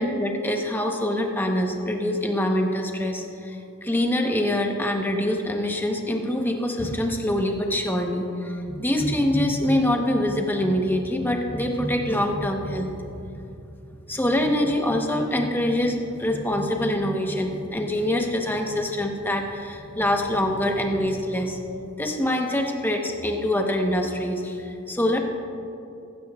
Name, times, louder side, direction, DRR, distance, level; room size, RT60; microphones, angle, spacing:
voice 1, 0.0-13.3 14.1-21.6 22.0-25.2, left 1 dB, 10° left, 2 dB, 1.0 m, -25 dB
15.0 x 14.0 x 2.4 m, 2.7 s
head